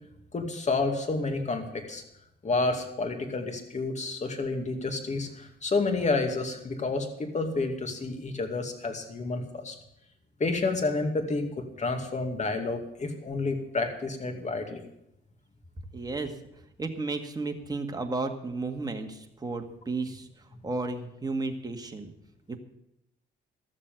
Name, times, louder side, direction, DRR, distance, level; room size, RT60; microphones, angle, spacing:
voice 1, 0.3-2.0 2.4-9.7 10.4-14.8, left 3 dB, 35° left, 5 dB, 2.4 m, -30 dB
voice 2, 15.9-16.4 16.8-20.3 20.6-22.1 22.5-22.6, right 3 dB, 20° right, 4 dB, 1.9 m, -33 dB
13.5 x 7.4 x 9.1 m, 0.83 s
cardioid pair, 90°, 20 cm